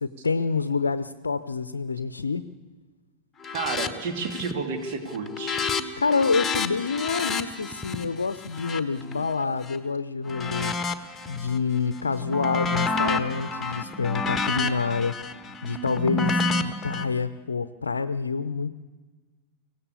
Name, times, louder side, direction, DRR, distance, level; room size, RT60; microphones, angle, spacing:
voice 1, 0.0-2.5 6.0-10.7 11.3-15.2 15.6-18.8, left 5 dB, 75° left, 12 dB, 0.6 m, -27 dB
sound 1, 3.4-3.9 4.2-4.6 4.9-9.8 10.3-11.6 12.0-17.0, left 3 dB, 15° left, 1.5 m, -29 dB
voice 2, 3.5-5.7, right 5 dB, 50° right, 5 dB, 2.4 m, -31 dB
24.5 x 16.5 x 8.5 m, 1.3 s
figure-of-eight pair, 90°, 0 cm